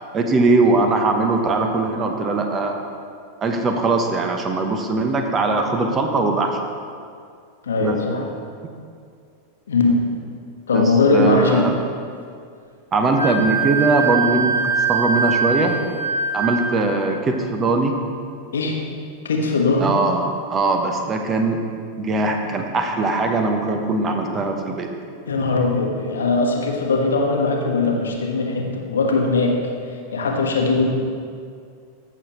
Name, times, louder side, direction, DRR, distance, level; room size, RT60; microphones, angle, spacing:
voice 1, 0.1-2.8 3.4-6.6 7.8-8.2 8.6-8.7 10.7-11.7 12.9-15.8 16.3-18.0 19.8-21.6 22.0-24.9, right 3 dB, 25° right, 4 dB, 0.9 m, -21 dB
voice 2, 7.6-8.3 9.7-10.0 10.7-11.7 18.5-18.8 19.2-19.9 25.3-29.6 30.1-30.9, left 3 dB, 65° left, 1 dB, 1.2 m, -20 dB
Wind instrument woodwind instrument, 13.2-16.9, right 5 dB, 80° right, 1.0 m, -22 dB
15.0 x 6.5 x 3.1 m, 2.2 s
figure-of-eight pair, 90°, 0 cm